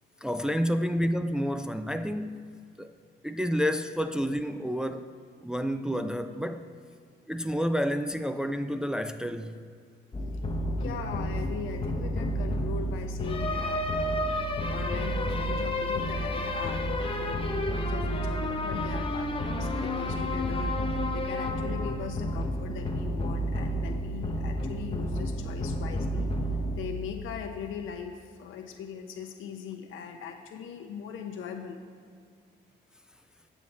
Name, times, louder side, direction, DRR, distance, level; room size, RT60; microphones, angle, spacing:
voice 1, 0.2-2.5 2.8-2.9 3.2-5.1 5.4-6.7 7.3-9.6 24.1-24.2, equal, 5° right, 0.3 m, -29 dB
sound 1, 10.1-27.7, equal, 25° left, 0.7 m, -30 dB
voice 2, 10.7-14.3 14.7-26.3 26.8-31.8, left 7 dB, 85° left, 0.9 m, -40 dB
8.3 x 7.2 x 4.2 m
cardioid pair, 90°, 20 cm